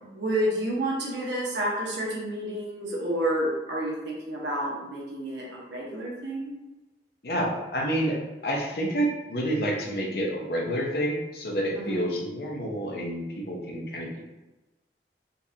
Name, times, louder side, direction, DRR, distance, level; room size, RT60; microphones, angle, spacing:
voice 1, 0.0-6.5 11.8-12.0, right 1 dB, 85° right, -4 dB, 1.1 m, -30 dB
voice 2, 7.2-14.2, right 1 dB, 60° left, 0 dB, 0.7 m, -29 dB
3.9 x 2.4 x 2.8 m, 1.1 s
head